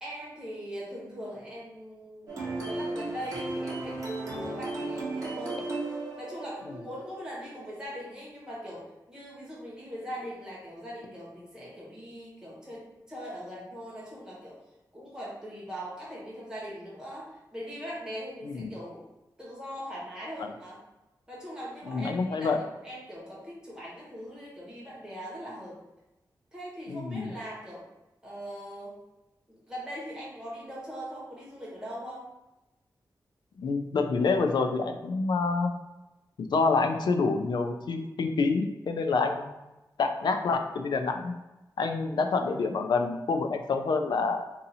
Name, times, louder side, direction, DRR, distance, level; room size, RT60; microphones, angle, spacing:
voice 1, 0.0-5.6 6.2-14.6 14.9-19.0 19.4-20.8 21.3-25.8 26.5-27.8 28.2-28.9 29.5-32.3, equal, 10° right, -7 dB, 1.2 m, -41 dB
sound 1, 2.3-7.8, right 2 dB, 45° right, 1.1 m, -35 dB
voice 2, 21.9-22.6 26.9-27.3 33.6-35.7 36.4-39.5 40.0-41.3 41.8-44.4, left 4 dB, 80° left, 6 dB, 0.4 m, -27 dB
2.7 x 2.7 x 4.0 m, 1.0 s
wide cardioid pair, 160°, 7 cm